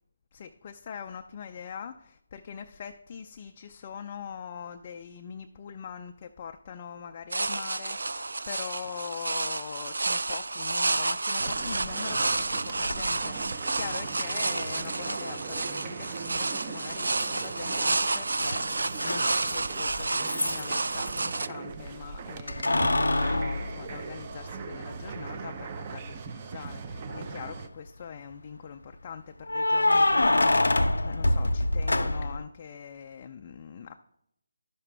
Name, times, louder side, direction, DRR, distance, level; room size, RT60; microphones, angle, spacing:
voice 1, 0.3-33.9, left 7 dB, 35° left, 5 dB, 0.4 m, -42 dB
sound 1, 7.3-21.5, right 3 dB, 75° right, 0.4 m, -30 dB
sound 2, 11.4-27.7, right 5 dB, 30° right, 0.6 m, -39 dB
Keys jangling, 12.9-13.0 14.8-14.9 17.2-17.7 18.0-21.2 22.5-24.6 25.1-25.2 27.0-27.5 29.5-32.4, left 2 dB, 90° left, 0.6 m, -26 dB
11.5 x 5.9 x 3.4 m, 0.78 s
figure-of-eight pair, 160°, 0 cm